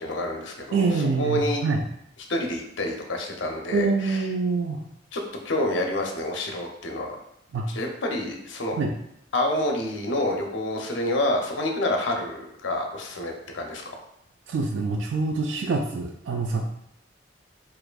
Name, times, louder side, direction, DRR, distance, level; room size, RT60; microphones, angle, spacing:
voice 1, 0.0-0.9 1.2-1.6 2.3-4.2 5.1-7.2 7.7-8.8 9.3-13.9, left 1 dB, 85° left, 2 dB, 0.6 m, -28 dB
voice 2, 0.7-1.8 3.7-4.8 7.5-7.7 8.8-8.9 14.5-16.7, right 4 dB, 80° right, 2 dB, 0.4 m, -25 dB
4.7 x 2.5 x 2.3 m, 0.78 s
head